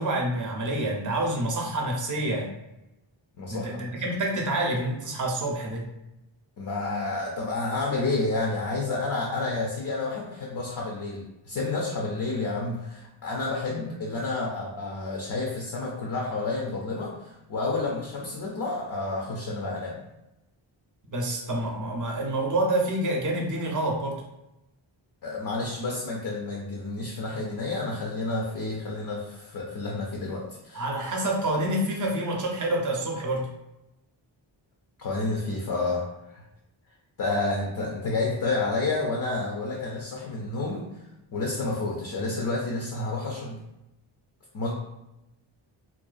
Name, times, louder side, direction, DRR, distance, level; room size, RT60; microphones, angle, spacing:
voice 1, 0.0-2.5 3.5-5.9 21.1-24.2 30.7-33.5, right 1 dB, 40° right, 0 dB, 0.6 m, -27 dB
voice 2, 3.4-3.9 6.6-20.0 25.2-30.8 35.0-36.4 37.2-40.8 41.3-43.6 44.5-44.7, left 3 dB, 45° left, -1 dB, 0.4 m, -30 dB
2.6 x 2.3 x 2.4 m, 0.92 s
wide cardioid pair, 105°, 48 cm